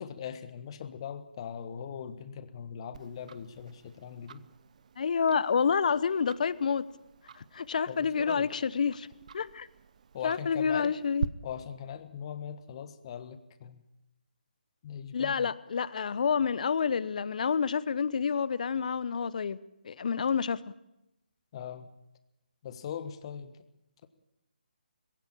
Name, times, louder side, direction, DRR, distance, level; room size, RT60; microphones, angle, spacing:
voice 1, 0.0-4.4 7.9-8.5 10.1-10.9 11.4-13.8 14.8-15.5 21.5-21.9 22.6-23.6, left 8 dB, 35° left, 12 dB, 1.3 m, -40 dB
Tick-tock, 2.9-11.3, right 7 dB, 45° right, 0.8 m, -44 dB
voice 2, 5.0-6.8 7.4-9.1 9.3-9.7 10.2-11.3 15.1-19.6 19.8-20.6, left 6 dB, 50° left, 19 dB, 0.8 m, -28 dB
20.5 x 16.5 x 8.8 m, 0.91 s
figure-of-eight pair, 150°, 5 cm